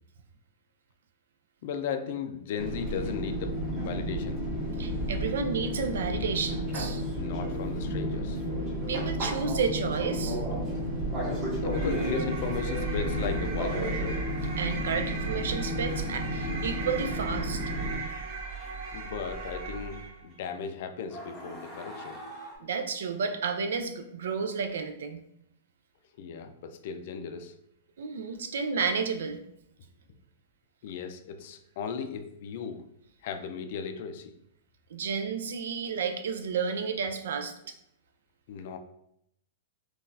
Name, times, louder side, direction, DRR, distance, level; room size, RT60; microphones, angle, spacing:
voice 1, 1.6-4.4 7.2-8.4 10.5-10.8 11.6-14.0 18.9-22.2 26.2-27.5 30.8-32.8 33.2-34.3 38.5-38.8, left 6 dB, 50° left, 7 dB, 0.3 m, -36 dB
Fixed-wing aircraft airplane, 2.6-18.0, equal, 25° right, 1.1 m, -32 dB
voice 2, 4.8-7.0 8.9-10.4 14.6-17.6 22.6-25.2 28.0-29.4 34.9-37.7, right 5 dB, 80° right, 7 dB, 0.4 m, -31 dB
sound 1, 11.7-20.2, right 4 dB, 45° right, 0.7 m, -38 dB
sound 2, 17.6-17.7 18.6-18.9 19.4-19.5 20.6-20.7 21.1-22.6, equal, 5° left, 0.8 m, -44 dB
3.8 x 2.3 x 2.6 m, 0.75 s
supercardioid pair, 160°, 0 cm